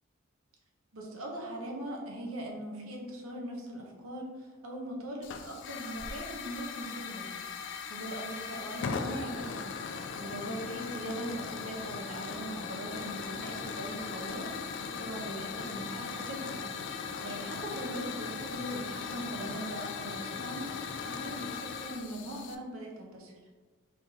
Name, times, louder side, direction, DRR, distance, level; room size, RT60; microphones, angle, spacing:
voice 1, 0.9-9.6 10.2-16.6 17.2-23.4, right 1 dB, 70° right, 0 dB, 0.9 m, -40 dB
Hiss / Fire, 5.2-22.5, left 5 dB, 60° left, 0.4 m, -39 dB
4.3 x 3.5 x 2.8 m, 1.4 s
head